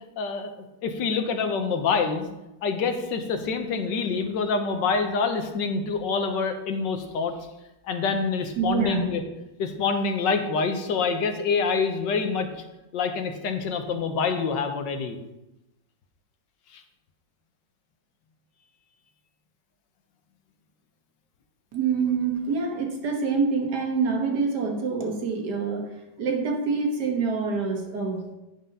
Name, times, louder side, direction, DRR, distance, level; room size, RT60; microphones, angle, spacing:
voice 1, 0.2-0.5 0.8-2.3 2.6-7.3 7.8-9.2 9.6-12.5 12.9-15.2 16.7-16.8, left 5 dB, 65° left, 6 dB, 1.6 m, -26 dB
voice 2, 8.6-9.0 21.7-25.9 26.2-28.3, right 5 dB, 60° right, 2 dB, 2.0 m, -26 dB
10.0 x 5.7 x 5.4 m, 0.95 s
omnidirectional pair, 2.1 m